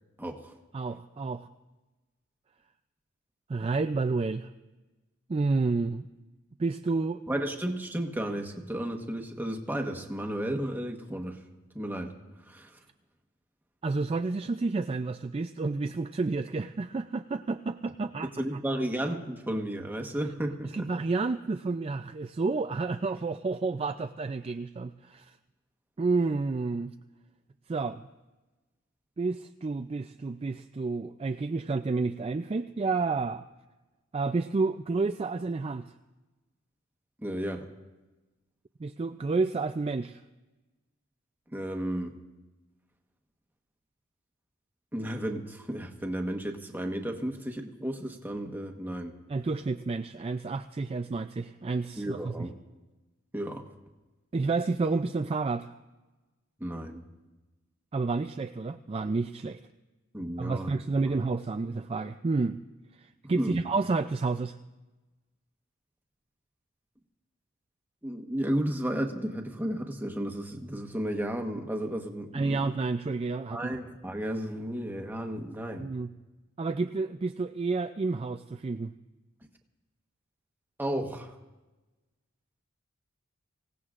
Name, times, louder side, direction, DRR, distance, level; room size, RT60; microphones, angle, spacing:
voice 1, 0.2-0.5 7.3-11.4 11.7-12.8 18.4-20.9 37.2-37.7 41.5-42.2 44.9-49.2 52.0-52.6 53.3-53.7 56.6-57.0 60.1-60.7 61.1-61.2 63.2-63.6 68.0-72.7 73.5-75.9 80.8-81.4, right 1 dB, 10° right, 3 dB, 1.2 m, -33 dB
voice 2, 0.7-1.5 3.5-4.5 5.3-6.1 6.6-7.2 13.8-18.3 20.7-25.3 26.0-26.9 27.7-28.0 29.2-33.5 34.1-35.9 38.8-40.2 49.3-52.3 54.3-55.7 57.9-59.6 60.4-62.6 63.0-64.6 72.3-73.7 75.8-76.1 76.6-78.9, right 3 dB, 30° right, 8 dB, 0.4 m, -30 dB
25.5 x 17.0 x 2.5 m, 1.1 s
head